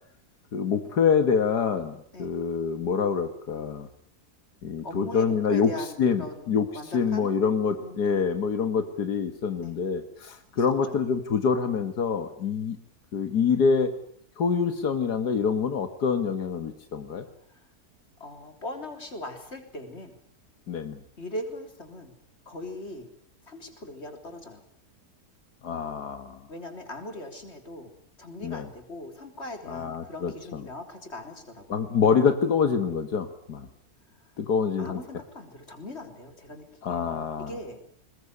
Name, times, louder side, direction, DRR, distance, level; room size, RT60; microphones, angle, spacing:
voice 1, 0.5-3.9 4.6-5.7 6.0-12.8 13.1-13.9 14.4-17.3 20.7-21.0 25.6-26.5 28.4-28.7 29.7-30.6 31.7-33.7 34.4-35.0 36.8-37.5, left 6 dB, 85° left, 9 dB, 2.1 m, -26 dB
voice 2, 4.8-6.5 6.7-7.3 7.8-8.0 8.7-8.9 9.6-9.8 10.5-11.0 17.5-17.6 18.2-20.2 21.2-22.1 22.5-23.1 23.5-24.6 26.5-27.9 28.2-31.9 34.2-34.3 34.8-37.8, left 1 dB, 40° left, 6 dB, 4.0 m, -40 dB
21.5 x 21.0 x 9.6 m, 0.62 s
omnidirectional pair, 1.7 m